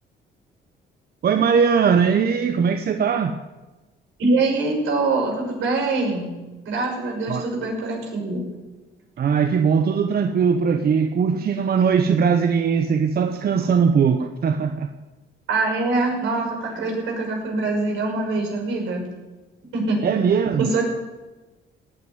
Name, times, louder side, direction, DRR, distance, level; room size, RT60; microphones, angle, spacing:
voice 1, 1.2-3.4 7.3-7.5 9.2-14.9 20.0-20.8, right 6 dB, 50° right, 0.9 m, -20 dB
voice 2, 4.2-6.3 6.6-8.4 15.5-19.1 19.7-20.0 20.6-20.8, right 3 dB, 80° right, 6.1 m, -24 dB
18.5 x 6.2 x 9.5 m
cardioid pair, 90°, 20 cm